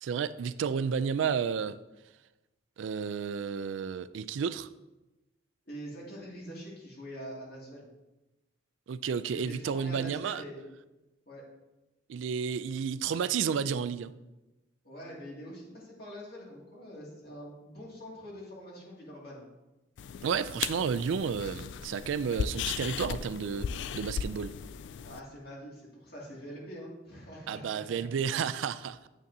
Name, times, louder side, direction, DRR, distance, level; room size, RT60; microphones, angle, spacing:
voice 1, 0.0-1.8 2.8-4.7 8.9-10.4 12.1-14.1 20.2-24.5 27.5-29.1, right 6 dB, 80° right, 0.3 m, -31 dB
voice 2, 5.7-7.9 9.3-10.7 11.3-11.4 14.8-19.5 25.0-28.0, equal, 55° left, 2.3 m, -44 dB
sound 1, 20.0-25.2, left 7 dB, 70° left, 0.3 m, -37 dB
9.0 x 7.2 x 2.7 m
head